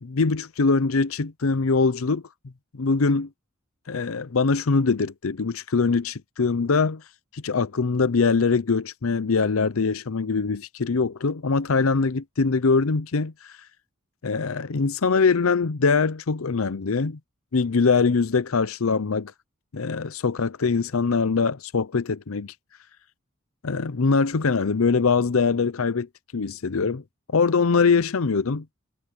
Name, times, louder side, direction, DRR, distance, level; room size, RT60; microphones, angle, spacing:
voice 1, 0.0-2.2 2.7-3.3 3.9-7.0 7.3-13.3 14.2-17.2 17.5-19.3 19.7-22.5 23.6-27.0 27.3-28.7, left 4 dB, 80° left, 0.7 m, -23 dB
head